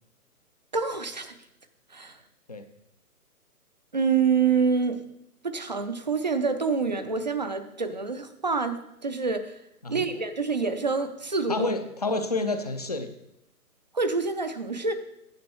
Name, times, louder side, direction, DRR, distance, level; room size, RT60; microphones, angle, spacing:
voice 1, 0.7-1.3 1.9-2.2 3.9-5.0 5.4-9.6 9.9-11.7 13.9-14.9, right 5 dB, 30° right, 9 dB, 0.5 m, -26 dB
voice 2, 11.5-13.1, left 2 dB, 25° left, 8 dB, 0.6 m, -29 dB
9.5 x 6.7 x 4.6 m, 0.80 s
figure-of-eight pair, 135°, 46 cm